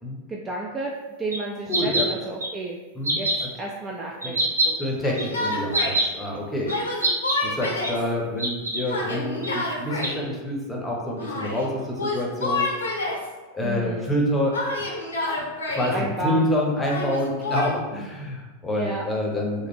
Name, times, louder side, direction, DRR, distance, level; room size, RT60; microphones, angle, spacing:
voice 1, 0.3-0.9 1.2-2.8 3.2-3.3 3.6-4.8 5.0-5.9 13.6-14.1 15.9-16.5 18.7-19.0, right 2 dB, 20° right, -2 dB, 0.3 m, -32 dB
sound 1, 1.3-1.4 1.7-2.0 2.4-2.5 3.0-3.4 4.2-4.7 5.2-5.3 5.7-6.0 6.7-6.8 7.0-7.3 7.8-7.9 8.4-8.8 9.4-9.5 10.0-10.1, right 2 dB, 70° right, 0.5 m, -23 dB
voice 2, 1.7-2.1 2.9-3.2 4.2-4.4 4.8-6.7 7.4-12.7 13.5-14.6 15.7-19.7, left 1 dB, 10° left, -2 dB, 0.8 m, -27 dB
Yell, 5.0-6.0 6.7-8.0 8.9-10.2 11.2-11.7 12.0-13.3 14.5-16.0 16.9-17.7, left 2 dB, 70° left, 0.6 m, -28 dB
3.2 x 2.1 x 3.5 m, 1.2 s
figure-of-eight pair, 90°, 0 cm